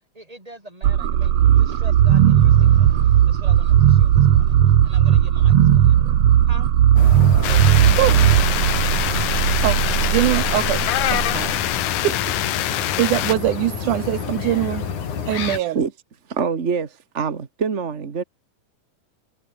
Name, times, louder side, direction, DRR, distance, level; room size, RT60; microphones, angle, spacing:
voice 1, 0.1-6.2 6.5-6.7 7.4-9.1, right 1 dB, 10° right, 6.1 m, -42 dB
sound 1, 0.8-11.7, right 10 dB, 60° right, 2.2 m, -16 dB
sound 2, 7.0-15.6, left 7 dB, 65° left, 4.4 m, -29 dB
sound 3, 7.4-13.3, left 13 dB, 90° left, 2.9 m, -25 dB
voice 2, 9.6-10.9 11.1-11.7 12.0-14.9 15.3-15.8, right 14 dB, 80° right, 2.3 m, -23 dB
voice 3, 16.3-18.2, right 5 dB, 40° right, 0.9 m, -25 dB
omnidirectional pair, 3.8 m